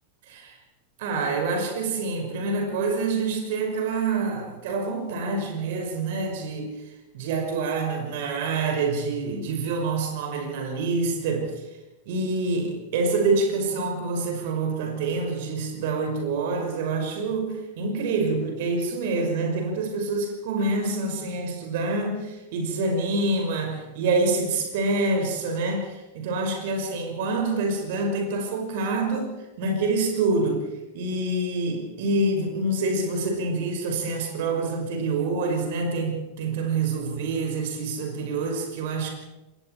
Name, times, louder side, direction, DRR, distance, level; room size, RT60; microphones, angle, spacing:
voice 1, 1.0-6.7 7.1-11.5 12.1-29.3 29.6-30.6 30.9-39.1, right 3 dB, 50° right, 3 dB, 5.6 m, -26 dB
27.5 x 21.0 x 4.6 m, 1.0 s
figure-of-eight pair, 90°, 0 cm